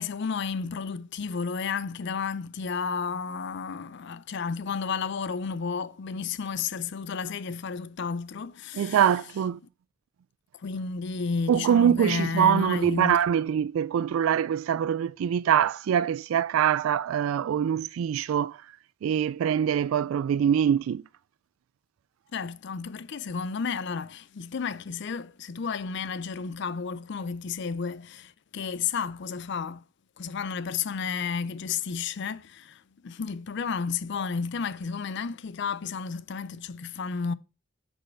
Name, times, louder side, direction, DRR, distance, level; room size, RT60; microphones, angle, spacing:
voice 1, 0.0-9.0 10.5-13.2 22.3-29.8 30.2-37.3, left 5 dB, 60° left, 0.5 m, -32 dB
voice 2, 8.7-9.6 11.5-18.6 19.0-21.0, right 9 dB, 85° right, 0.3 m, -24 dB
7.4 x 5.4 x 4.4 m
head